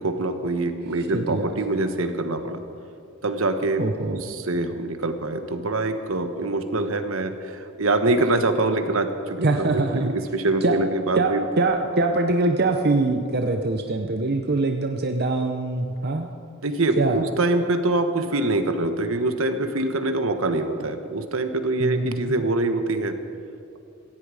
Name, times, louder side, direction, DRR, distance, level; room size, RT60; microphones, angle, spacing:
voice 1, 0.0-2.6 3.2-3.8 4.1-11.4 16.6-23.2, right 2 dB, 70° right, 8 dB, 1.2 m, -24 dB
voice 2, 1.1-1.5 3.8-4.2 9.4-10.1 10.6-10.7 11.2-16.3 17.0-17.2 21.8-22.4, right 2 dB, 50° right, 4 dB, 0.8 m, -23 dB
17.5 x 15.5 x 5.0 m, 2.5 s
head